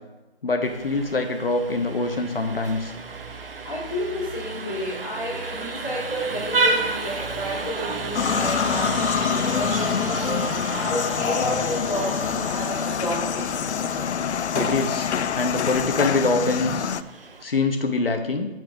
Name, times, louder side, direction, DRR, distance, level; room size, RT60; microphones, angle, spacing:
voice 1, 0.4-2.9 14.6-15.0 15.3-16.9 17.4-18.5, left 3 dB, 60° left, 5 dB, 0.9 m, -24 dB
Vehicle horn car horn honking, 0.6-17.4, right 3 dB, 60° right, 0.8 m, -32 dB
voice 2, 3.6-10.5 10.9-13.5 14.5-14.6, equal, 20° left, -14 dB, 3.0 m, -31 dB
sound 1, 8.1-17.0, left 7 dB, 90° left, 0.5 m, -26 dB
7.9 x 4.6 x 5.8 m, 1.0 s
hypercardioid pair, 180°, 33 cm